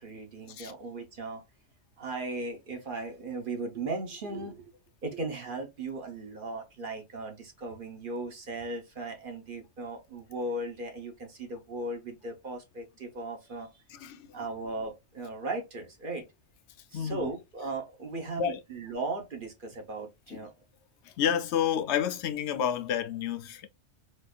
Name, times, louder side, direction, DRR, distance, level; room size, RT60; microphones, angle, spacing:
voice 1, 0.0-1.4 2.0-4.6 5.0-13.7 14.3-16.3 16.9-20.5, right 2 dB, 50° right, 1.0 m, -37 dB
voice 2, 16.9-17.3 18.4-18.6 21.2-23.7, left 9 dB, 70° left, 0.8 m, -29 dB
4.2 x 2.6 x 2.3 m
omnidirectional pair, 1.3 m